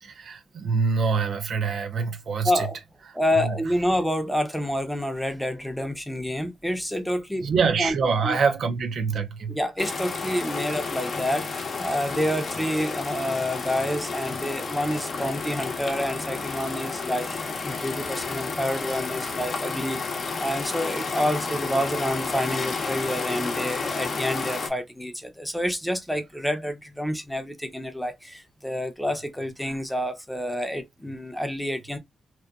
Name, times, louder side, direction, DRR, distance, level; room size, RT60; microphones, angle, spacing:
voice 1, 0.0-2.7 3.4-3.5 7.4-9.6, right 5 dB, 70° right, 0.5 m, -25 dB
voice 2, 2.4-2.8 3.1-7.5 7.8-8.0 8.2-8.4 9.5-20.0 20.4-32.0, equal, ahead, 0.6 m, -28 dB
sound 1, 9.8-24.7, left 4 dB, 55° left, 0.6 m, -31 dB
2.8 x 2.1 x 2.3 m
cardioid pair, 100°, 0 cm